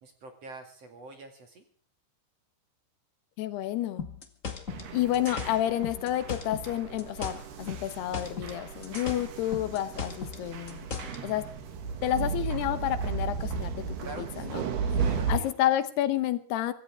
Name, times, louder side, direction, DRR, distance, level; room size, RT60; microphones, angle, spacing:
voice 1, 0.0-1.7 14.0-15.5, right 2 dB, 45° right, 5 dB, 2.7 m, -45 dB
voice 2, 3.4-4.1 4.9-10.9 11.2-11.5 12.0-15.0 15.3-16.7, left 12 dB, 75° left, 12 dB, 3.0 m, -30 dB
sound 1, 4.0-6.7 7.0-8.6 8.8-11.2, left 6 dB, 45° left, 1.0 m, -37 dB
sound 2, 4.7-15.4, right 5 dB, 70° right, 4.0 m, -35 dB
25.0 x 14.5 x 3.6 m, 0.44 s
omnidirectional pair, 4.8 m